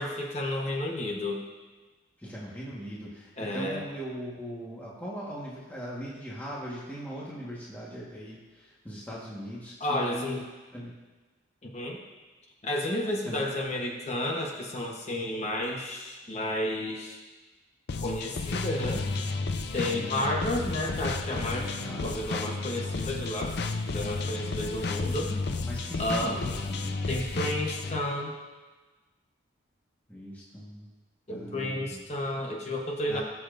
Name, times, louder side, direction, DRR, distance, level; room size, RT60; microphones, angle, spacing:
voice 1, 0.0-1.4 3.4-3.8 9.8-10.4 11.6-12.0 12.6-17.2 18.0-19.0 19.7-21.7 22.0-23.6 23.9-25.3 26.0-26.4 27.1-28.3 31.3-33.2, left 1 dB, 35° left, 0 dB, 1.0 m, -31 dB
voice 2, 2.2-10.4 10.7-10.9 13.2-13.4 20.0-20.3 21.8-22.2 25.1-27.0 30.1-30.9 31.3-32.0 33.1-33.2, equal, 10° left, -6 dB, 1.4 m, -40 dB
sound 1, 17.9-28.0, left 3 dB, 55° left, 0.5 m, -32 dB
18.5 x 7.0 x 2.6 m, 1.3 s
head